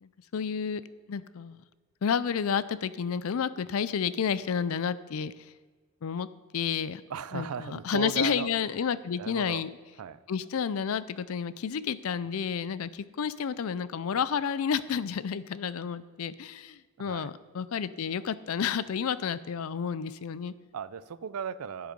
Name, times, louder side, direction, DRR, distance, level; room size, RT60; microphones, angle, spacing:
voice 1, 0.0-0.8 1.1-1.6 2.0-5.3 6.0-6.3 6.5-7.0 7.3-9.7 10.3-20.5, left 7 dB, 75° left, 17 dB, 0.4 m, -30 dB
voice 2, 7.1-9.6 10.0-10.2 17.0-17.3 20.7-21.9, right 7 dB, 90° right, 17 dB, 0.4 m, -37 dB
10.5 x 7.8 x 5.2 m, 1.4 s
head